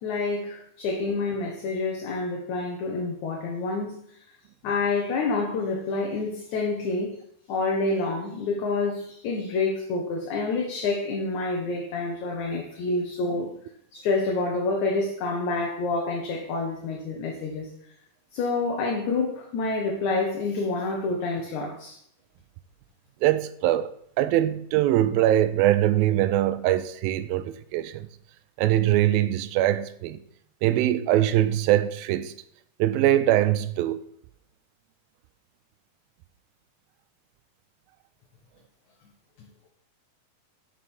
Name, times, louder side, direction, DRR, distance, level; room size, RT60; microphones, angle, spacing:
voice 1, 0.0-4.0 4.6-7.2 7.5-13.5 13.9-17.7 18.3-22.0, left 3 dB, 65° left, 2.1 m, -28 dB
voice 2, 23.2-23.9 24.2-28.1 28.6-30.2 30.6-32.3 32.8-34.0, right 13 dB, 85° right, 2.3 m, -22 dB
9.1 x 4.8 x 6.1 m
omnidirectional pair, 4.2 m